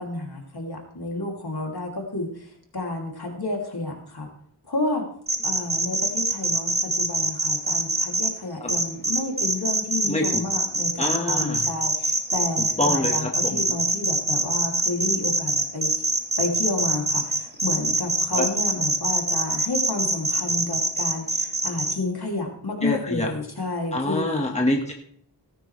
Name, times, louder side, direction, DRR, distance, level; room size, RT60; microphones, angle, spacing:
voice 1, 0.0-4.3 4.6-5.0 5.4-15.9 16.4-24.3, left 2 dB, 60° left, 0 dB, 2.9 m, -30 dB
sound 1, 5.3-8.3 8.7-21.9, right 2 dB, 20° right, 1.5 m, -23 dB
voice 2, 10.1-10.4 11.0-11.6 12.8-13.6 18.3-18.4 22.8-23.3 23.9-24.9, left 1 dB, 15° left, 0 dB, 1.6 m, -25 dB
17.5 x 9.4 x 3.3 m, 0.64 s
wide cardioid pair, 65°, 44 cm